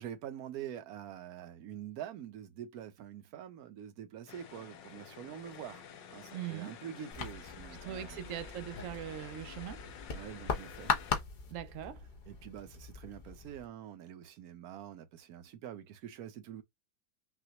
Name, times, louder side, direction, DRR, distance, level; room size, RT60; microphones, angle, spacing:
voice 1, 0.0-8.2 10.1-11.0 12.3-16.6, right 10 dB, 65° right, 1.0 m, -46 dB
sound 1, 4.3-11.2, left 8 dB, 80° left, 1.4 m, -50 dB
voice 2, 6.3-6.7 7.8-9.9 11.5-12.1, right 11 dB, 90° right, 0.7 m, -41 dB
sound 2, 7.1-13.7, left 5 dB, 50° left, 0.6 m, -39 dB
6.0 x 2.3 x 2.8 m
omnidirectional pair, 2.0 m